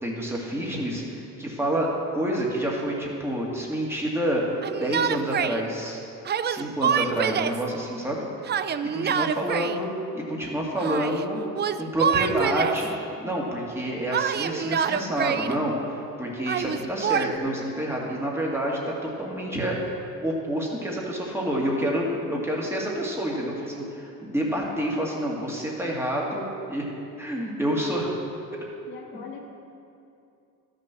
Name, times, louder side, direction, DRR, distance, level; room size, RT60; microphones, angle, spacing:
voice 1, 0.0-4.4 4.7-6.0 6.4-8.2 8.9-9.9 10.1-11.4 11.8-12.9 13.2-20.0 20.2-26.8 27.2-28.1, equal, 5° right, -3 dB, 2.2 m, -28 dB
Yell, 4.6-5.6 6.2-7.6 8.4-9.8 10.8-11.2 11.5-12.9 14.1-15.6 16.5-17.3, right 8 dB, 30° right, 0.4 m, -26 dB
voice 2, 9.1-9.6 22.3-22.5 28.9-29.4, left 7 dB, 85° left, 0 dB, 1.7 m, -42 dB
13.0 x 6.6 x 6.1 m, 2.6 s
cardioid pair, 95°, 35 cm